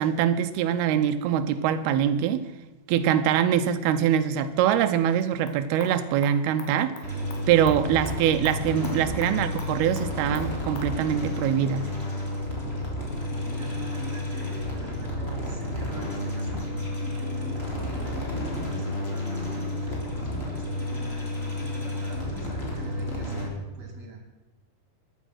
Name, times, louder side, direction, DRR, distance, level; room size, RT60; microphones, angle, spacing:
voice 1, 0.0-2.4 2.9-7.0 7.5-11.9, right 9 dB, 85° right, 10 dB, 2.6 m, -23 dB
sound 1, 5.1-10.9, left 4 dB, 70° left, 3.5 m, -46 dB
sound 2, 7.0-23.5, left 1 dB, 15° left, 3.1 m, -31 dB
voice 2, 13.3-24.2, right 2 dB, 25° right, 2 dB, 3.5 m, -42 dB
14.5 x 11.0 x 6.3 m, 1.1 s
omnidirectional pair, 4.5 m